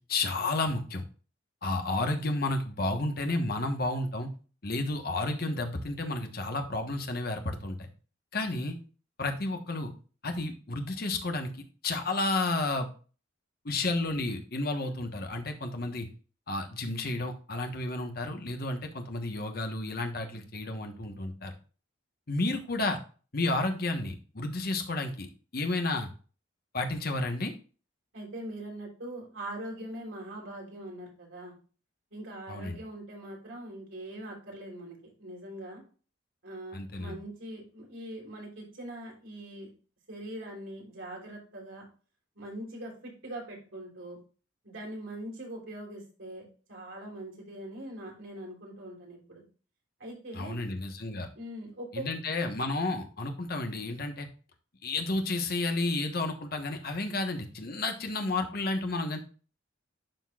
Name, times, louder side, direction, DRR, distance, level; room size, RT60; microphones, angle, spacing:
voice 1, 0.1-1.0 1.6-4.3 4.6-7.9 8.3-8.8 9.2-9.9 10.2-11.5 11.8-12.9 13.6-16.1 16.5-21.5 22.3-23.0 23.3-25.3 25.5-26.1 26.7-27.5 32.5-32.8 36.7-37.2 50.3-51.3 51.9-54.3 54.8-59.2, left 2 dB, 50° left, 5 dB, 1.2 m, -31 dB
voice 2, 28.1-31.5 32.1-35.8 36.4-39.7 40.1-41.9 42.3-44.2 44.6-49.4 50.0-50.6 51.3-52.0, right 1 dB, 80° right, -2 dB, 3.3 m, -42 dB
12.0 x 4.4 x 2.4 m, 0.37 s
head